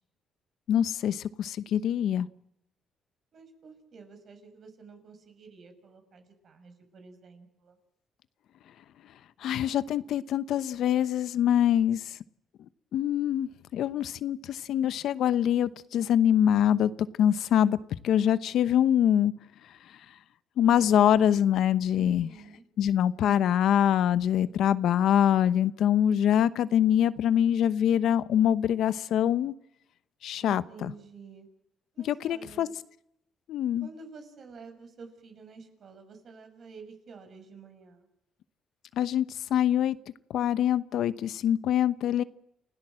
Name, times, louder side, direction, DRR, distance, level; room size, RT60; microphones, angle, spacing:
voice 1, 0.7-2.3 9.4-12.2 12.9-16.9 17.2-17.8 18.0-19.3 20.6-22.3 22.8-29.5 30.2-30.9 32.0-32.7 33.5-33.9 39.0-40.0 40.3-42.2, left 10 dB, 75° left, 14 dB, 0.9 m, -24 dB
voice 2, 3.3-7.8 22.0-22.7 30.4-31.5 31.9-32.7 33.8-38.1, right 4 dB, 55° right, 7 dB, 6.3 m, -49 dB
29.5 x 17.0 x 7.7 m, 0.79 s
cardioid pair, 90°, 0 cm